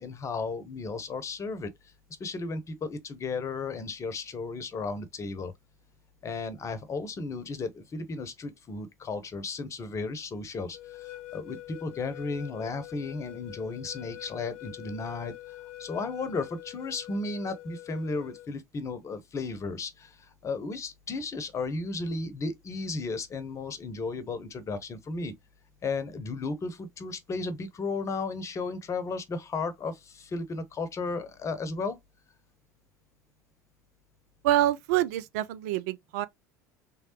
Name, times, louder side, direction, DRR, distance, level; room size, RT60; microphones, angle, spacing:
voice 1, 0.0-1.7 2.2-5.5 6.2-20.2 20.4-25.3 25.8-32.0, left 3 dB, 35° left, 0.9 m, -34 dB
sound 1, 10.7-18.5, left 16 dB, 60° left, 0.7 m, -45 dB
voice 2, 34.4-36.3, right 13 dB, 65° right, 0.4 m, -26 dB
3.5 x 3.3 x 2.9 m
hypercardioid pair, 70°, 9 cm